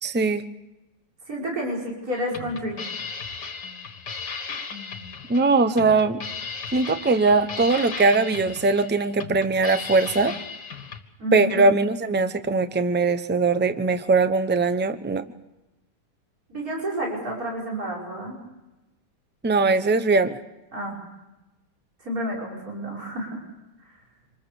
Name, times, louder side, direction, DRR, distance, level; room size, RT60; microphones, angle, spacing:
voice 1, 0.0-0.4 5.3-6.2 6.7-10.3 11.3-15.3 19.4-20.4, right 3 dB, 15° right, 11 dB, 0.4 m, -21 dB
voice 2, 1.3-2.8 11.2-11.7 16.5-18.4 20.7-21.0 22.0-23.4, right 1 dB, 50° right, -3 dB, 5.8 m, -30 dB
sound 1, 2.1-11.0, left 5 dB, 70° left, 2.4 m, -36 dB
26.5 x 21.0 x 6.9 m, 1.0 s
omnidirectional pair, 1.9 m